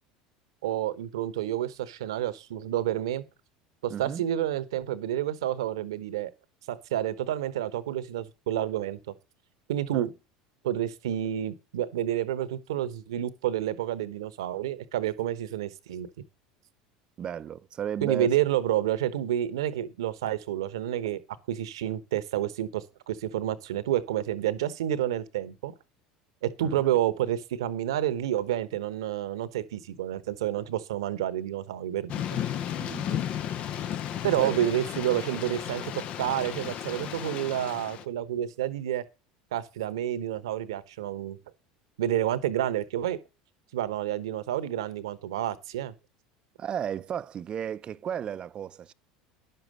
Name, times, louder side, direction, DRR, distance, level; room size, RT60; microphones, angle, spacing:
voice 1, 0.6-3.2 3.8-6.3 6.7-9.0 9.7-10.1 10.6-16.1 18.0-21.2 21.5-25.7 26.4-32.4 34.2-39.0 39.5-41.4 42.0-43.2 43.7-45.9, right 12 dB, 80° right, 1.0 m, -29 dB
voice 2, 3.9-4.2 9.9-10.1 17.2-18.3 26.6-26.9 32.8-33.3 34.4-34.6 46.6-48.9, right 9 dB, 40° right, 0.6 m, -34 dB
Thunder / Rain, 32.1-38.0, left 10 dB, 50° left, 0.8 m, -34 dB
10.5 x 6.7 x 6.4 m
hypercardioid pair, 80°, 3 cm